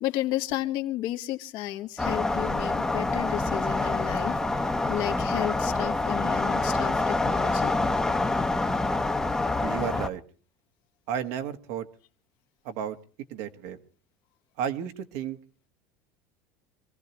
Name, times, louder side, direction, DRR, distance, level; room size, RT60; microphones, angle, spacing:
voice 1, 0.0-4.4 4.9-7.8, left 14 dB, 65° left, 1.4 m, -32 dB
sound 1, 2.0-10.1, left 2 dB, 10° left, 0.9 m, -26 dB
voice 2, 9.6-10.2 11.1-11.9 12.6-13.0 13.3-13.8 14.6-15.4, right 9 dB, 75° right, 1.6 m, -32 dB
26.0 x 15.0 x 3.0 m
supercardioid pair, 130°, 8 cm